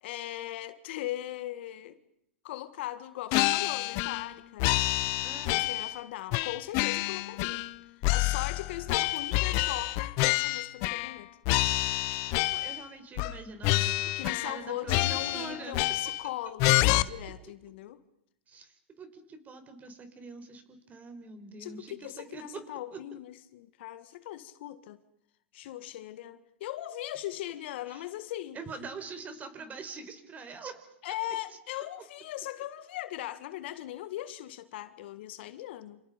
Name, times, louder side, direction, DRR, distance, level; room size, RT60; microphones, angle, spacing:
voice 1, 0.0-2.0 2.4-4.8 5.5-7.7 8.1-11.3 14.2-18.0 21.6-25.0 25.5-28.6 31.0-36.0, left 14 dB, 65° left, 1.7 m, -39 dB
sound 1, 3.3-4.3 4.6-6.0 6.3-7.7 8.0-11.2 11.4-12.8 13.2-13.4 13.6-14.6 14.9-16.3 16.6-17.0, left 19 dB, 50° left, 1.0 m, -28 dB
voice 2, 5.2-5.7 12.3-15.8 18.5-22.6 22.9-23.0 27.9-28.0 28.5-30.7, right 4 dB, 25° right, 4.8 m, -44 dB
28.5 x 28.0 x 5.2 m
hypercardioid pair, 120°, 7 cm